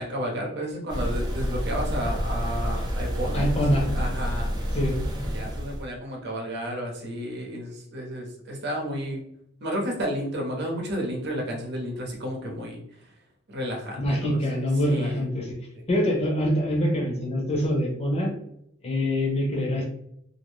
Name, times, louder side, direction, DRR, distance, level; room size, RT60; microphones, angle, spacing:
voice 1, 0.0-4.5 5.3-9.2 9.6-12.8 13.5-14.4 14.8-15.2, equal, 60° right, 0 dB, 0.8 m, -32 dB
sound 1, 0.9-5.8, equal, 20° right, 0.5 m, -28 dB
voice 2, 3.3-3.9 4.7-5.0 14.0-15.6 15.9-18.3 18.8-19.8, equal, 30° left, -1 dB, 0.8 m, -24 dB
2.6 x 2.0 x 3.1 m, 0.74 s
head